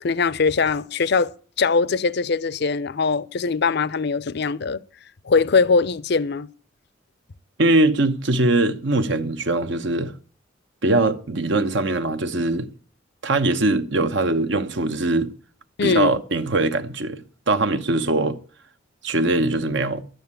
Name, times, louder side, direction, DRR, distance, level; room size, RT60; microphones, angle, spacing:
voice 1, 0.0-4.8 5.3-6.5 15.8-16.2, left 4 dB, 55° left, 0.6 m, -21 dB
voice 2, 7.6-10.1 10.8-12.7 13.2-15.3 15.8-18.4 19.0-20.0, right 2 dB, 65° right, 1.1 m, -21 dB
12.0 x 9.3 x 8.3 m
head